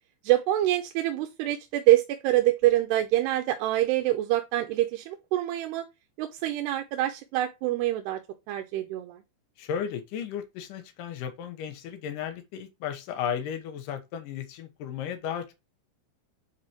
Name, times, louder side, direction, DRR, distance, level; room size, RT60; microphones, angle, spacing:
voice 1, 0.2-5.8 6.2-8.2 8.5-9.2, right 15 dB, 80° right, 2.7 m, -25 dB
voice 2, 9.6-15.5, left 8 dB, 65° left, 2.2 m, -34 dB
9.6 x 4.3 x 3.1 m
omnidirectional pair, 5.1 m